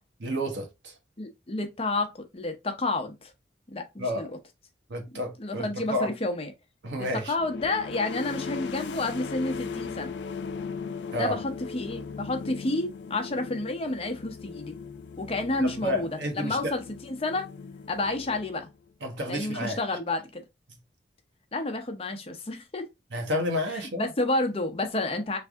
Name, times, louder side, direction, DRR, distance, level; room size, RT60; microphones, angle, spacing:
voice 1, 0.2-0.9 4.0-4.3 4.9-6.1 6.8-7.3 11.1-11.4 15.6-16.7 19.0-19.8 23.1-24.1, equal, 85° right, 1.0 m, -31 dB
voice 2, 1.2-2.1 2.3-3.3 3.7-4.3 5.4-6.5 7.3-10.1 11.1-14.7 15.2-17.5 17.9-18.7 19.3-20.4 21.5-22.9 24.0-25.4, left 2 dB, 30° left, 0.6 m, -30 dB
sound 1, 7.4-18.9, left 5 dB, 75° left, 0.4 m, -38 dB
3.3 x 2.6 x 3.4 m
head